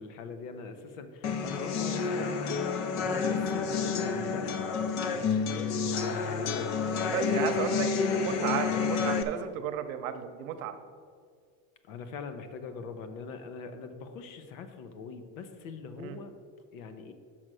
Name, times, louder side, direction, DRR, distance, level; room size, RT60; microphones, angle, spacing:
voice 1, 0.0-2.5 2.9-9.2 11.9-16.3 16.7-17.1, left 5 dB, 75° left, 8 dB, 1.0 m, -42 dB
sound 1, 1.2-9.2, left 5 dB, 35° left, 0.4 m, -29 dB
voice 2, 7.1-10.8 16.0-16.2, right 8 dB, 75° right, 9 dB, 0.8 m, -33 dB
6.5 x 6.0 x 6.2 m, 2.1 s
cardioid pair, 170°, 41 cm